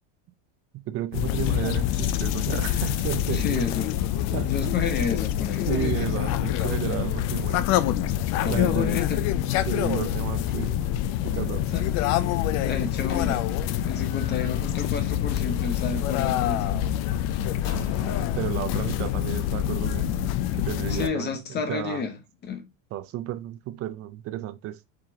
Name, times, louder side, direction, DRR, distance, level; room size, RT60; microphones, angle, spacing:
voice 1, 0.7-3.7 4.3-4.6 5.7-7.7 8.5-9.0 9.7-10.9 11.2-11.7 18.4-21.4 21.7-22.0 22.9-24.8, right 13 dB, 40° right, 0.5 m, -32 dB
sound 1, 1.1-21.1, left 11 dB, 45° left, 0.4 m, -26 dB
voice 2, 3.3-4.0 4.4-5.7 8.4-9.2 11.7-11.9 12.6-13.4 13.8-16.8 20.9-22.2 22.4-22.7, left 6 dB, 25° left, 1.1 m, -30 dB
Slam, 12.1-19.5, left 5 dB, 75° left, 1.8 m, -45 dB
5.0 x 3.5 x 2.9 m
supercardioid pair, 140°, 38 cm